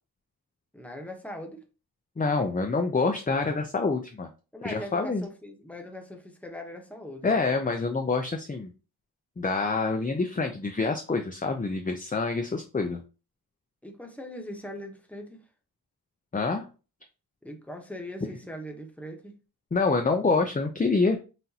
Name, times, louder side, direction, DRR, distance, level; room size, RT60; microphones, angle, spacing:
voice 1, 0.7-1.6 4.5-7.4 13.8-15.4 17.4-19.3, left 1 dB, 5° left, 3 dB, 0.9 m, -40 dB
voice 2, 2.2-4.3 4.6-5.2 7.2-8.7 9.4-13.0 16.3-16.7 19.7-21.2, left 3 dB, 20° left, 4 dB, 0.4 m, -26 dB
5.8 x 2.6 x 2.8 m, 0.33 s
wide cardioid pair, 90°, 39 cm